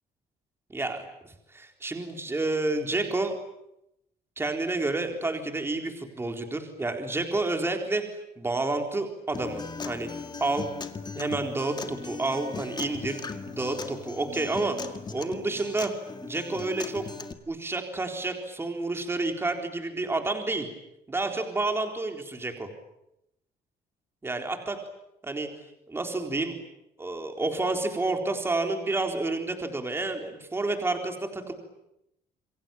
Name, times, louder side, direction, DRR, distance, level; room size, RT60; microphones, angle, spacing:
voice 1, 0.7-3.4 4.4-8.0 8.4-10.1 10.4-10.7 11.1-14.8 15.1-15.9 16.2-17.0 17.5-20.7 21.1-22.7 24.2-24.8 25.2-25.5 25.9-26.5 27.0-31.5, right 2 dB, 15° right, 5 dB, 4.0 m, -29 dB
Acoustic guitar, 9.3-17.3, left 5 dB, 25° left, 2.0 m, -38 dB
28.0 x 23.5 x 9.0 m, 0.85 s
cardioid pair, 145°, 16 cm